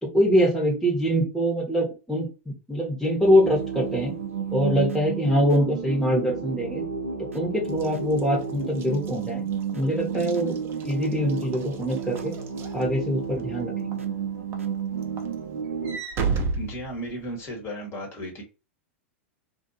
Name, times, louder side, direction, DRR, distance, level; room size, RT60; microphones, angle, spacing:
voice 1, 0.0-4.1 4.5-6.8 7.3-9.4 9.7-12.3 12.7-14.0, equal, 5° left, -4 dB, 1.1 m, -24 dB
sound 1, 3.2-16.0, right 6 dB, 90° right, 0.4 m, -32 dB
Walk footsteps / Slam, 7.7-13.4 13.9-14.2 14.5-17.5, right 4 dB, 35° right, 0.6 m, -34 dB
voice 2, 16.6-18.4, equal, 35° left, 0 dB, 1.3 m, -35 dB
2.6 x 2.4 x 2.7 m, 0.30 s
hypercardioid pair, 95°, 7 cm